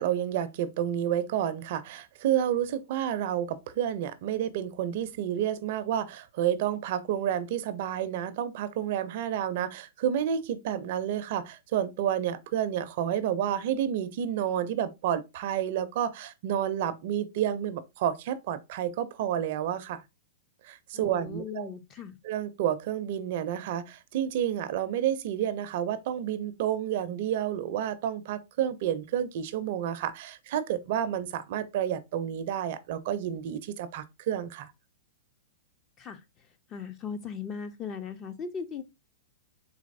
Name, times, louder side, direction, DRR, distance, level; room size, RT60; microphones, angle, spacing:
voice 1, 0.0-20.0 20.6-21.7 22.2-34.7, right 10 dB, 55° right, 0.5 m, -30 dB
voice 2, 20.9-22.2 36.0-36.2 36.7-38.8, left 6 dB, 30° left, 0.5 m, -38 dB
3.9 x 2.9 x 2.6 m
hypercardioid pair, 135°, 0 cm